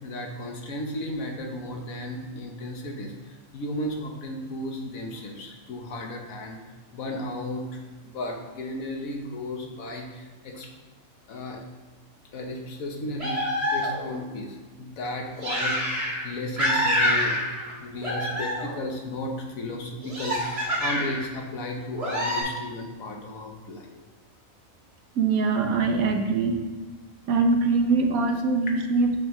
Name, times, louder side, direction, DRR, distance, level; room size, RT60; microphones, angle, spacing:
voice 1, 0.0-6.6 6.9-7.8 8.1-10.7 11.3-11.6 12.3-13.4 13.7-15.9 16.2-17.4 17.8-23.9, left 1 dB, 75° left, 2 dB, 1.5 m, -34 dB
sound 1, 13.2-14.2 15.4-16.3 16.6-17.7 18.0-18.8 20.0-21.3 21.9-22.4, equal, 50° right, 2.7 m, -26 dB
voice 2, 25.2-26.6 27.3-29.1, right 4 dB, 85° right, 4 dB, 1.3 m, -23 dB
8.8 x 6.1 x 3.1 m, 1.3 s
omnidirectional pair, 1.4 m